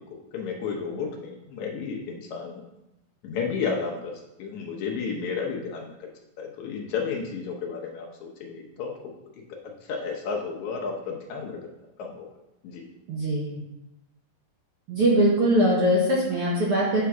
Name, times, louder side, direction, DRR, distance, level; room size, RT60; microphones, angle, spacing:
voice 1, 0.1-2.7 3.2-6.1 6.4-8.9 9.8-11.6 12.0-12.3 12.6-12.8, left 5 dB, 70° left, 0 dB, 2.0 m, -32 dB
voice 2, 13.1-13.6 14.9-17.1, right 1 dB, 60° right, -4 dB, 1.6 m, -22 dB
8.2 x 3.7 x 5.9 m, 0.90 s
omnidirectional pair, 4.0 m